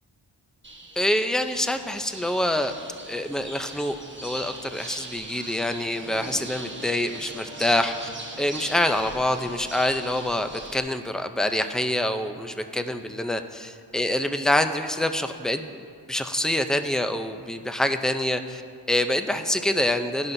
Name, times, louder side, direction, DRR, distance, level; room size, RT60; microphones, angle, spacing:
sound 1, 0.6-10.8, right 2 dB, 25° right, 1.3 m, -40 dB
voice 1, 1.0-2.7 3.1-4.0 4.2-8.1 8.4-15.7 16.1-18.6 18.9-20.3, left 1 dB, ahead, 7 dB, 0.5 m, -26 dB
16.5 x 11.0 x 2.7 m, 2.2 s
wide cardioid pair, 75°, 47 cm